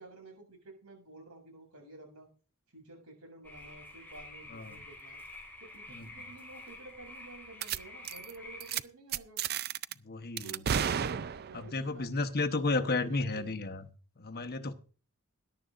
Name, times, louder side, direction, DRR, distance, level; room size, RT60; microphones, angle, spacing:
voice 1, 0.0-2.3 2.7-5.2 5.6-9.4 10.4-13.6, right 2 dB, 75° right, 3 dB, 7.1 m, -51 dB
sound 1, 3.4-8.8, left 2 dB, 10° left, 5.0 m, -49 dB
voice 2, 4.5-4.8 5.9-6.1 9.9-10.7 11.5-13.9 14.2-14.7, left 3 dB, 45° left, 9 dB, 1.0 m, -33 dB
sound 2, 7.6-7.8 8.0-8.3 8.6-8.8 9.1-9.9 10.4-11.7, right 8 dB, 45° right, 0.4 m, -32 dB
20.5 x 11.0 x 2.5 m, 0.39 s
head